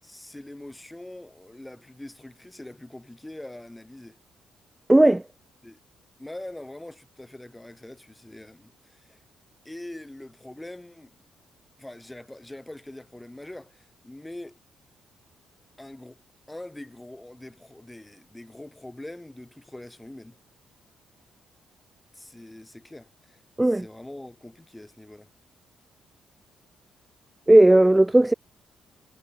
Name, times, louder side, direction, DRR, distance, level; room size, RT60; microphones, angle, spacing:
voice 1, 0.0-4.2 5.6-5.8 6.2-9.2 9.6-11.2 11.8-14.6 15.8-16.2 16.5-20.4 22.1-25.3, left 1 dB, 10° left, 7.4 m, -43 dB
voice 2, 4.9-5.2 23.6-23.8 27.5-28.3, right 1 dB, 10° right, 0.4 m, -15 dB
cardioid pair, 90°, 0 cm